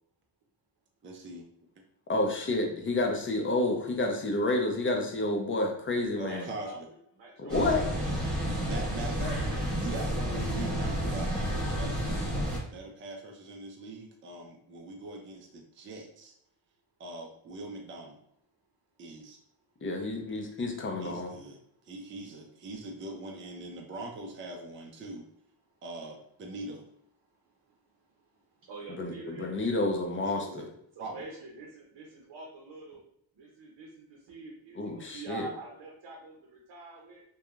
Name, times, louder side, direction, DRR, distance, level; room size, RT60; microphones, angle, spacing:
voice 1, 1.0-1.5 6.2-6.8 7.6-8.2 8.6-9.4 9.8-16.3 17.0-18.2 19.0-19.4 21.0-21.6 21.9-25.2 25.8-26.8 30.1-30.7 31.0-31.2, right 2 dB, 25° right, 1 dB, 0.5 m, -42 dB
voice 2, 2.1-6.5 7.4-7.8 19.8-21.3 29.0-30.7 34.8-35.5, left 2 dB, 25° left, 2 dB, 0.6 m, -29 dB
voice 3, 6.3-6.8 7.2-7.8 27.4-28.0 28.6-29.5 31.0-33.1 33.4-37.2, right 2 dB, 60° right, -1 dB, 0.7 m, -45 dB
sound 1, 7.5-12.6, equal, ahead, 1.3 m, -31 dB
2.7 x 2.3 x 2.4 m, 0.71 s
cardioid pair, 80°, 46 cm